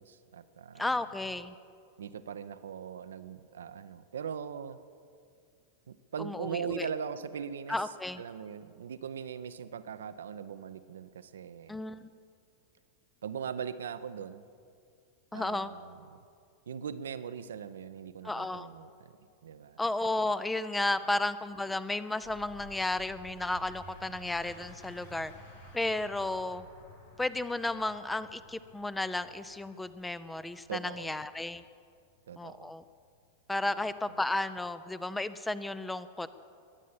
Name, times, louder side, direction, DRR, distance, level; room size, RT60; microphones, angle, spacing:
voice 1, 0.0-0.9 2.0-4.8 5.9-7.8 8.2-11.8 13.2-14.5 15.3-16.2 16.7-19.1 19.4-19.8 30.7-31.2 32.3-32.7 33.6-33.7, right 7 dB, 65° right, 12 dB, 0.6 m, -40 dB
voice 2, 0.8-1.5 6.2-6.9 7.7-8.2 11.7-12.1 15.3-15.7 18.2-18.7 19.8-25.3 25.7-26.6 27.2-31.6 32.4-32.8 33.5-36.4, left 2 dB, 5° left, 14 dB, 0.5 m, -33 dB
sound 1, 22.2-33.3, left 1 dB, 70° left, 4.8 m, -53 dB
21.5 x 8.4 x 7.2 m, 2.3 s
figure-of-eight pair, 90°, 0 cm